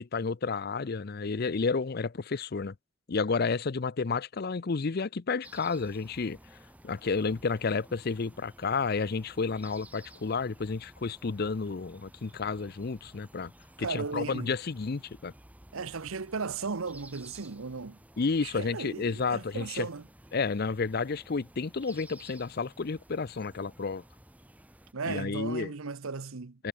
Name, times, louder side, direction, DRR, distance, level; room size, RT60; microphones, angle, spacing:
voice 1, 0.0-2.7 3.1-6.4 6.8-13.5 13.8-15.3 18.2-19.9 20.3-24.0 25.1-25.7 26.6-26.7, left 4 dB, 50° left, 0.5 m, -31 dB
sound 1, 5.4-24.9, right 1 dB, 5° right, 2.1 m, -55 dB
voice 2, 13.8-14.5 15.7-18.0 18.4-20.1 24.9-26.6, right 4 dB, 80° right, 0.9 m, -36 dB
head